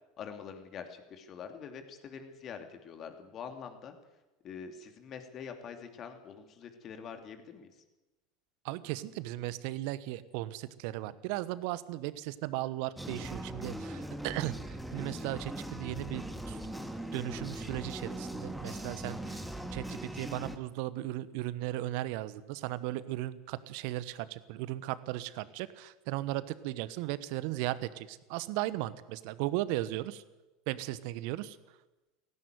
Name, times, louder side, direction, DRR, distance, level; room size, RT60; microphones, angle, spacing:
voice 1, 0.2-3.9 4.4-7.7, left 7 dB, 40° left, 6 dB, 2.9 m, -45 dB
voice 2, 8.6-14.6 14.9-16.6 17.1-19.4 19.7-30.2 30.7-31.6, right 16 dB, 60° right, 16 dB, 1.1 m, -36 dB
sound 1, 13.0-20.6, right 1 dB, ahead, 1.9 m, -40 dB
17.0 x 16.5 x 9.3 m, 1.1 s
figure-of-eight pair, 75°, 0 cm